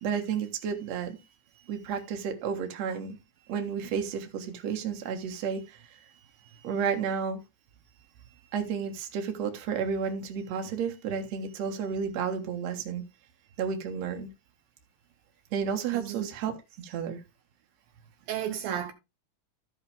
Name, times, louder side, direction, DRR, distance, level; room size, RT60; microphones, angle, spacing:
voice 1, 0.0-1.2 1.7-3.2 3.5-5.8 6.6-7.4 8.5-13.0 13.6-14.3 15.5-16.6 16.8-17.2, right 6 dB, 55° right, 2.2 m, -31 dB
voice 2, 15.9-16.3 18.3-18.9, right 10 dB, 75° right, 2.6 m, -33 dB
14.0 x 5.6 x 3.5 m
omnidirectional pair, 4.4 m